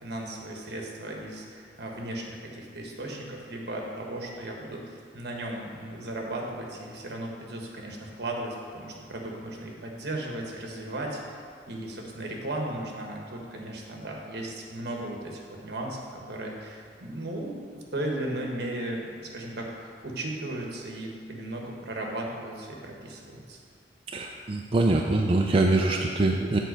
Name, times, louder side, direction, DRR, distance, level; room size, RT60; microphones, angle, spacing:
voice 1, 0.0-23.6, right 1 dB, 65° right, 0 dB, 1.3 m, -36 dB
voice 2, 24.1-26.6, right 2 dB, 30° right, 1 dB, 0.4 m, -24 dB
7.7 x 4.5 x 6.4 m, 2.2 s
head